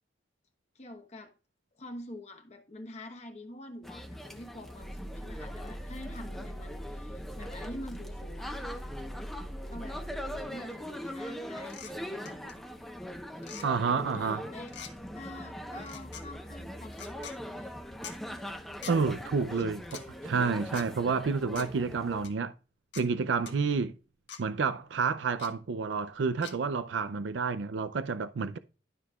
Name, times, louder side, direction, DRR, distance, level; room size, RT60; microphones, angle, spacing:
voice 1, 0.7-1.3 1.8-8.6 9.7-12.5 13.8-14.7 15.1-17.8 19.5-19.6, left 1 dB, 35° left, 1.0 m, -46 dB
sound 1, 3.8-22.3, equal, ahead, 0.8 m, -42 dB
sound 2, 4.8-10.4, equal, 55° left, 2.6 m, -42 dB
sound 3, 11.7-11.9 12.3-12.5 13.4-13.7 14.7-14.9 15.8-16.2 16.9-17.4 18.0-18.2 18.8-19.0 19.8-20.0 20.7-20.9 21.6-21.7 22.2-22.3 22.9-23.1 23.5-23.6 24.3-24.4 25.4-25.5 26.4-26.5, left 8 dB, 75° left, 1.4 m, -44 dB
voice 2, 13.6-14.4 18.9-22.5 23.0-23.9 24.4-28.6, right 5 dB, 80° right, 0.5 m, -29 dB
12.5 x 5.9 x 2.3 m
head